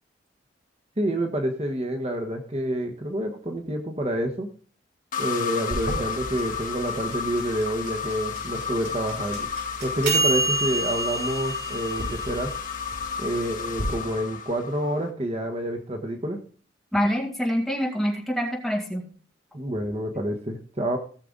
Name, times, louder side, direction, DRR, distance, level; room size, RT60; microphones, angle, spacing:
voice 1, 1.0-4.5 5.2-9.5 9.8-12.5 13.2-16.4 19.5-21.0, right 1 dB, 35° right, 3 dB, 1.1 m, -28 dB
sound 1, 5.1-15.1, left 6 dB, 45° left, 1.2 m, -33 dB
sound 2, 5.7-13.9, right 2 dB, 65° right, 6.4 m, -29 dB
voice 2, 16.9-19.0, equal, ahead, -1 dB, 2.3 m, -25 dB
17.5 x 6.7 x 3.8 m, 0.43 s
head